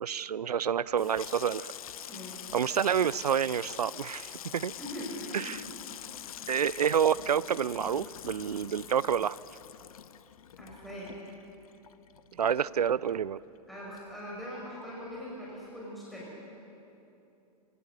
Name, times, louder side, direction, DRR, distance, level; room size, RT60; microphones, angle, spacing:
voice 1, 0.0-1.7 2.5-4.7 5.3-5.6 6.5-9.4 12.3-13.4, right 8 dB, 75° right, 21 dB, 0.5 m, -28 dB
Water tap faucet / Sink (filling or washing), 0.8-13.7 14.0-14.6 14.9-15.2, left 10 dB, 65° left, 0.8 m, -45 dB
voice 2, 2.1-2.4 4.8-5.6 10.6-11.1 13.7-16.3, equal, ahead, -6 dB, 5.2 m, -41 dB
25.5 x 18.0 x 6.7 m, 2.9 s
figure-of-eight pair, 100°, 20 cm